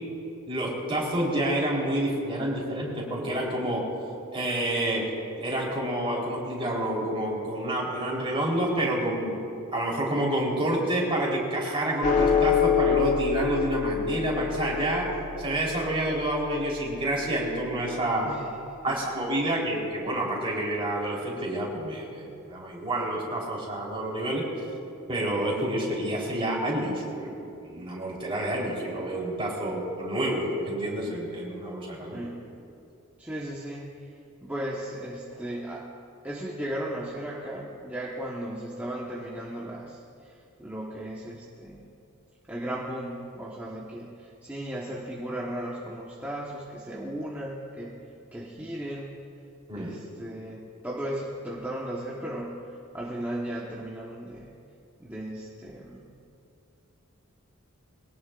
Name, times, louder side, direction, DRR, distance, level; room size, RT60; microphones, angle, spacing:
voice 1, 0.5-3.9 4.3-5.1 5.4-9.3 9.7-15.0 15.4-18.3 18.8-24.4 25.1-32.2 49.7-49.9, right 1 dB, 25° right, -4 dB, 3.8 m, -28 dB
sound 1, 12.0-18.6, left 6 dB, 35° left, 1.2 m, -27 dB
voice 2, 32.1-32.5 33.2-34.1 34.4-35.9 36.2-41.9 42.5-48.0 48.3-49.2 49.7-54.5 55.0-56.1, right 1 dB, 10° right, -4 dB, 1.2 m, -36 dB
22.5 x 18.0 x 2.5 m, 2.7 s
head